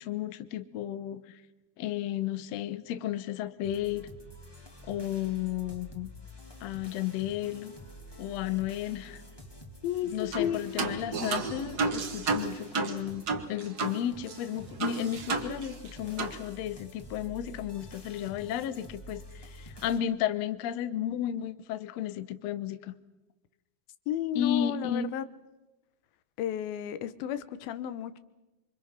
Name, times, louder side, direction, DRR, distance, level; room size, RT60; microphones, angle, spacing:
voice 1, 0.0-1.4 1.8-4.1 4.8-6.1 6.6-7.7 8.2-9.2 10.1-22.9 24.3-25.1, left 10 dB, 70° left, 1.6 m, -33 dB
sound 1, 3.6-20.0, equal, 10° left, 1.4 m, -48 dB
sound 2, 10.3-10.5 10.8-14.0 14.3-14.4 14.8-15.9 16.2-16.4, right 4 dB, 75° right, 0.9 m, -32 dB
voice 2, 24.1-25.3 26.4-28.2, left 10 dB, 90° left, 2.9 m, -32 dB
27.5 x 24.5 x 5.9 m
omnidirectional pair, 4.1 m